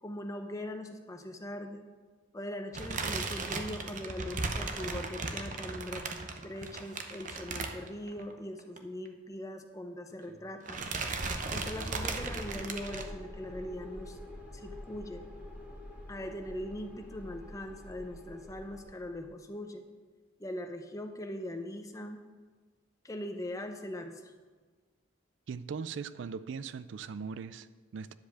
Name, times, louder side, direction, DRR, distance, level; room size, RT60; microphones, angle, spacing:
voice 1, 0.0-1.9 2.3-6.1 6.4-10.8 11.5-14.2 14.5-15.3 16.1-19.8 20.4-22.3 23.0-24.3, left 1 dB, 15° left, 5 dB, 0.6 m, -41 dB
sound 1, 2.7-8.3 8.6-8.8 9.0-9.1 10.1-10.4 10.7-13.0, right 3 dB, 40° right, 0.7 m, -36 dB
sound 2, 11.5-19.3, left 1 dB, 5° right, 1.4 m, -47 dB
voice 2, 25.5-28.1, right 5 dB, 65° right, 15 dB, 0.3 m, -40 dB
10.5 x 5.1 x 6.8 m, 1.4 s
head